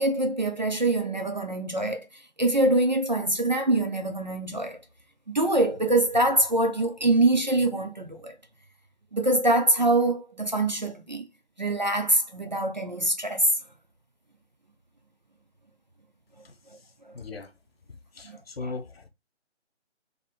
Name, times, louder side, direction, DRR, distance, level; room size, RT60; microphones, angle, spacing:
voice 1, 0.0-2.1 2.4-4.8 5.3-8.3 9.1-11.3 11.6-13.5 18.2-18.7, right 1 dB, 40° right, 0.4 m, -24 dB
voice 2, 17.1-17.5 18.2-19.1, left 4 dB, 55° left, 0.7 m, -37 dB
2.7 x 2.6 x 4.2 m
figure-of-eight pair, 155°, 36 cm